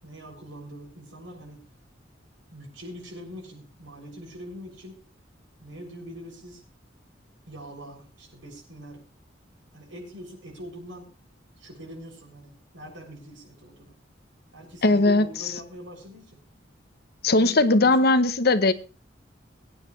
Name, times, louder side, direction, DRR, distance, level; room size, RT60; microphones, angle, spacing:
voice 1, 0.0-1.6 2.5-5.0 5.6-6.6 7.5-9.0 9.7-11.1 11.6-13.9 14.5-16.4 17.3-18.1, equal, 85° right, 7.1 m, -43 dB
voice 2, 14.8-15.2 17.2-18.7, left 2 dB, 55° left, 0.9 m, -19 dB
23.5 x 9.9 x 3.3 m
head